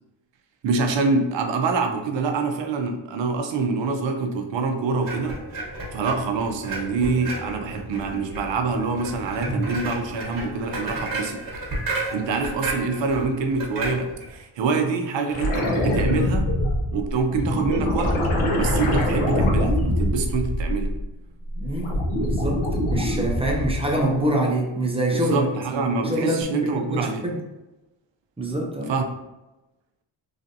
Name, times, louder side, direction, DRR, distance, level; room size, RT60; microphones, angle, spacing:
voice 1, 0.6-5.5 5.9-11.4 12.1-16.5 16.9-18.2 18.6-21.0 25.1-27.3 28.8-29.0, right 4 dB, 65° right, 5 dB, 0.5 m, -25 dB
sound 1, 5.0-14.4, right 2 dB, 45° right, 1.0 m, -32 dB
sound 2, 15.3-21.1 21.5-24.0 26.4-26.5, left 1 dB, 90° left, 0.7 m, -23 dB
voice 2, 21.6-22.6 22.9-25.5 25.7-27.4 28.4-28.9, right 1 dB, 15° right, -1 dB, 0.3 m, -25 dB
3.2 x 2.6 x 2.6 m, 1.0 s
wide cardioid pair, 140°, 48 cm